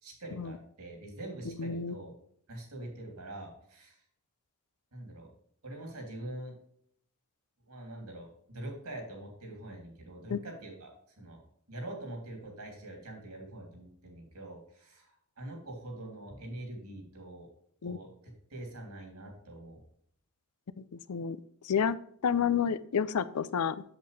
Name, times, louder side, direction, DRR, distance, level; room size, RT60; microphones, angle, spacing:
voice 1, 0.0-2.1 2.5-4.0 4.9-5.3 5.6-6.5 7.6-11.4 11.7-17.5 17.8-18.1 18.5-19.8, right 1 dB, 85° right, 1 dB, 3.0 m, -44 dB
voice 2, 1.6-1.9 10.3-10.4 17.8-18.0 20.8-21.4 21.6-22.0 22.2-23.8, left 7 dB, 85° left, 16 dB, 0.5 m, -30 dB
8.0 x 7.5 x 3.3 m, 0.67 s
head